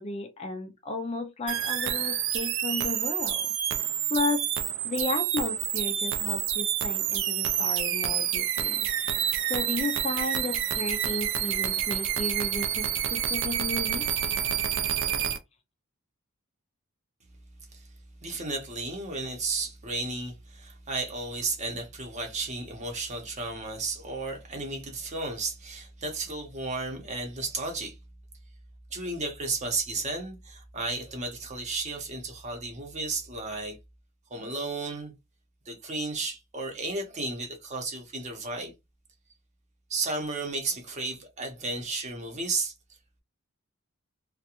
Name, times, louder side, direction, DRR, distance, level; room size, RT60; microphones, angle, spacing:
voice 1, 0.0-3.5 4.1-4.5 4.8-8.9 9.4-14.1, left 3 dB, 30° left, 0.4 m, -33 dB
sound 1, 1.5-15.4, right 10 dB, 60° right, 0.4 m, -28 dB
voice 2, 18.2-28.0 28.9-33.8 34.3-35.1 35.7-38.7 39.9-42.7, right 3 dB, 30° right, 0.7 m, -33 dB
2.4 x 2.2 x 2.8 m
head